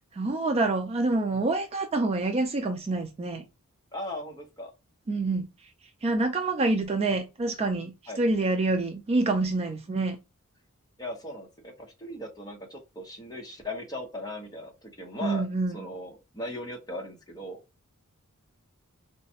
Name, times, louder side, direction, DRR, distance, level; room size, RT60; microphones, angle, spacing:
voice 1, 0.1-3.4 5.1-5.5 6.0-10.2 15.2-15.8, right 2 dB, 30° right, 0.3 m, -27 dB
voice 2, 3.9-4.7 8.1-8.2 11.0-15.4 15.7-17.6, left 1 dB, 15° left, 0.8 m, -38 dB
3.8 x 2.2 x 2.7 m
head